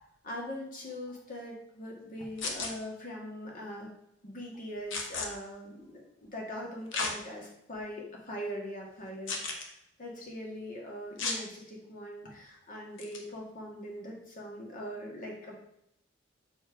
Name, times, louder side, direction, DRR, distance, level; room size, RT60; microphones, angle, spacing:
voice 1, 0.2-3.9 4.2-9.7 10.0-15.6, equal, 45° left, -1 dB, 1.9 m, -41 dB
sound 1, 2.4-2.7 4.9-5.3 6.9-7.1 7.8-7.9 9.3-9.7 11.2-11.4 13.0-13.2, left 3 dB, 75° left, 1.2 m, -33 dB
6.6 x 4.5 x 4.7 m, 0.76 s
head